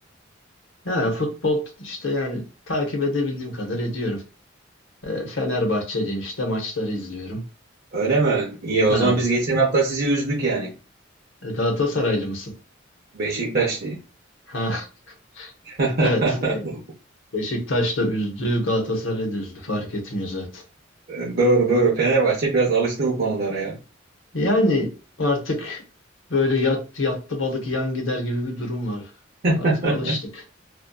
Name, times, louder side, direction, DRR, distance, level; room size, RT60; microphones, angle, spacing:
voice 1, 0.8-4.2 5.0-7.4 8.9-9.2 11.4-12.5 14.5-14.9 15.4-15.5 16.0-16.6 17.3-20.6 24.3-24.9 25.2-25.8 26.3-29.1 29.6-30.4, left 1 dB, 80° left, 0.8 m, -25 dB
voice 2, 7.9-10.7 13.1-14.0 15.6-16.8 21.1-23.8 29.4-30.2, right 3 dB, 50° right, 0.5 m, -21 dB
2.6 x 2.2 x 2.2 m
head